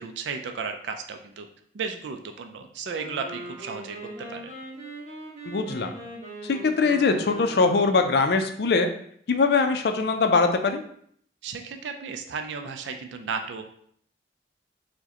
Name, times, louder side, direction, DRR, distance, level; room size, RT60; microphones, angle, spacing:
voice 1, 0.0-1.5 1.7-4.0 4.3-4.5 11.4-13.6, right 5 dB, 80° right, 6 dB, 0.4 m, -34 dB
Wind instrument woodwind instrument, 2.8-8.1, right 1 dB, 40° right, 1.2 m, -40 dB
voice 2, 5.5-5.9 6.5-8.9 9.3-10.8, left 4 dB, 60° left, 6 dB, 0.4 m, -22 dB
4.6 x 2.1 x 2.8 m, 0.64 s
head